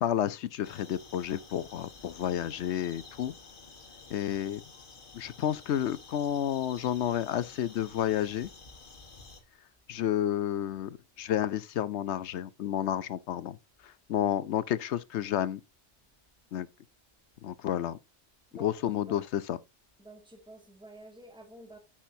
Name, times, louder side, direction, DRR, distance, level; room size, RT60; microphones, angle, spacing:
voice 1, 0.0-3.3 4.1-4.6 5.1-8.5 9.9-13.6 13.8-15.6 16.5-16.7 17.4-18.0 18.6-19.6, left 10 dB, 75° left, 0.9 m, -31 dB
sound 1, 0.6-9.4, left 4 dB, 50° left, 1.4 m, -51 dB
voice 2, 18.5-19.2 20.0-21.8, right 1 dB, 5° right, 2.0 m, -50 dB
10.0 x 7.4 x 2.7 m
omnidirectional pair, 1.2 m